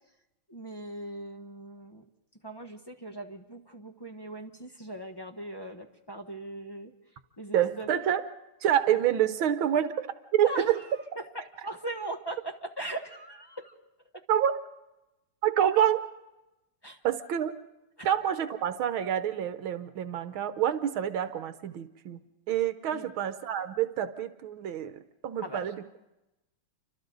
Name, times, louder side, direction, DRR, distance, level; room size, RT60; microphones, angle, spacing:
voice 1, 0.5-2.0 2.4-6.9 7.4-7.9 10.4-10.7 11.1-13.7 16.8-17.0 18.0-18.1 22.9-23.1 25.4-25.7, right 1 dB, 15° left, 4 dB, 0.9 m, -39 dB
voice 2, 7.5-8.2 8.6-10.1 10.3-10.8 14.3-14.6 15.4-16.0 17.0-17.5 18.0-22.2 22.5-25.8, right 10 dB, 75° right, 10 dB, 1.7 m, -27 dB
29.5 x 25.0 x 4.0 m, 0.96 s
omnidirectional pair, 2.3 m